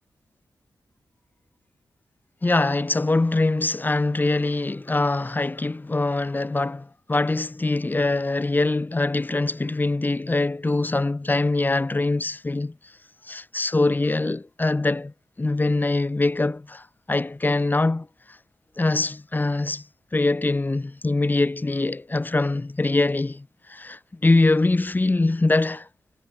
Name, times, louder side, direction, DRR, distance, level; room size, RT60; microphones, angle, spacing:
voice 1, 2.4-12.7 13.3-15.1 15.4-18.1 18.8-19.8 20.1-25.9, left 2 dB, 25° left, 3.2 m, -23 dB
wide cardioid pair, 105°, 7 cm